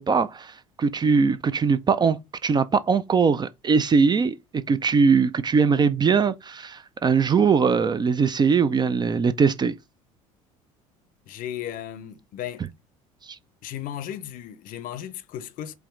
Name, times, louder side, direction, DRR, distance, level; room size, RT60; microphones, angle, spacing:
voice 1, 0.0-9.7 13.2-13.4, right 5 dB, 25° right, 0.4 m, -21 dB
voice 2, 11.3-12.7 13.6-15.7, left 11 dB, 50° left, 0.6 m, -35 dB
4.9 x 3.0 x 3.1 m
figure-of-eight pair, 65°, 18 cm